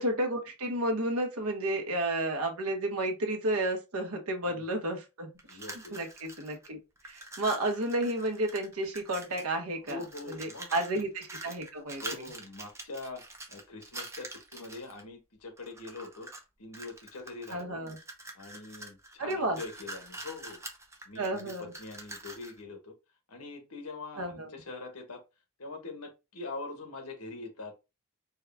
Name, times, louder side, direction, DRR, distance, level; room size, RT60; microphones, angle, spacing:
voice 1, 0.0-5.3 5.9-6.8 7.0-10.0 10.3-12.0 17.5-18.0 19.2-19.6 21.2-21.7 24.2-24.5, right 1 dB, 75° right, 1.1 m, -31 dB
sound 1, 5.4-6.7 7.0-9.5 9.9-15.0 15.6-16.4 16.7-22.6, right 2 dB, 15° right, 0.6 m, -45 dB
voice 2, 5.5-6.0 9.9-10.7 11.0-11.1 11.8-13.2 13.5-16.3 16.6-17.8 18.3-20.6 21.0-22.9 23.3-25.2 25.6-27.7, left 3 dB, 80° left, 1.3 m, -43 dB
4.7 x 2.3 x 3.4 m
head